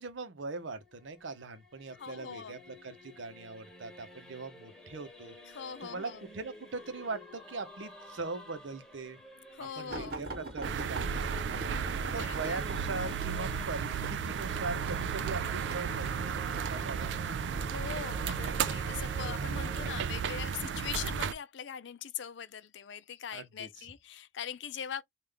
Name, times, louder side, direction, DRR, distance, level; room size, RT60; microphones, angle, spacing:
voice 1, 0.0-5.3 5.8-9.2 9.8-11.8 12.1-17.4 23.3-23.7, right 3 dB, 85° right, 0.7 m, -41 dB
Singing / Musical instrument, 0.6-19.9, left 1 dB, 5° left, 1.0 m, -51 dB
voice 2, 1.9-2.6 5.5-6.2 9.5-10.2 12.1-12.6 17.7-25.0, left 8 dB, 75° left, 0.4 m, -41 dB
sound 1, 9.9-16.7 17.5-17.9 18.8-19.5 20.2-20.4 20.8-20.9, right 2 dB, 50° right, 1.1 m, -43 dB
sound 2, 10.6-21.3, right 7 dB, 70° right, 0.3 m, -34 dB
3.4 x 2.4 x 3.6 m
head